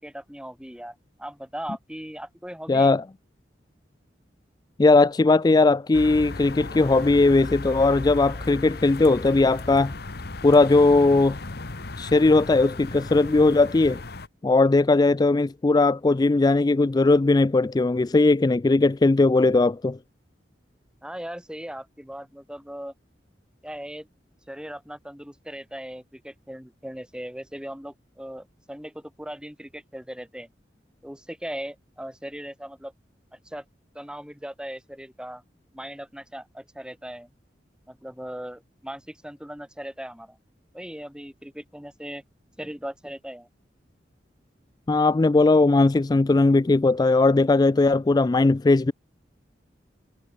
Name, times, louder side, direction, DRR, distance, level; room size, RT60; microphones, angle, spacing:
voice 1, 0.0-2.9 21.0-22.9 23.6-24.1 24.5-30.5 31.0-32.9 33.4-33.6 33.9-35.4 35.7-37.3 37.9-40.4 40.7-42.2 42.6-43.5, equal, 5° right, 4.4 m, -38 dB
voice 2, 2.7-3.0 4.8-9.9 10.4-11.4 12.0-14.0 14.4-20.0 44.9-48.9, left 3 dB, 25° left, 0.4 m, -19 dB
sound 1, 5.9-14.3, left 2 dB, 60° left, 1.4 m, -36 dB
head